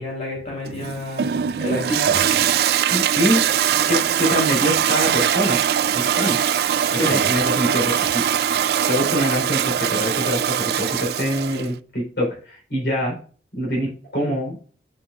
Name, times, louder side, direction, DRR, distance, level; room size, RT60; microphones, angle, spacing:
voice 1, 0.0-2.2 6.9-7.3, left 1 dB, 40° left, -3 dB, 3.4 m, -28 dB
Toilet flush, 0.7-11.7, right 9 dB, 60° right, 0.3 m, -21 dB
voice 2, 2.9-3.6 3.9-5.6 5.9-6.4 6.9-8.5 8.9-13.2 13.5-14.6, equal, 65° left, -1 dB, 3.7 m, -24 dB
12.0 x 5.4 x 2.4 m, 0.42 s
head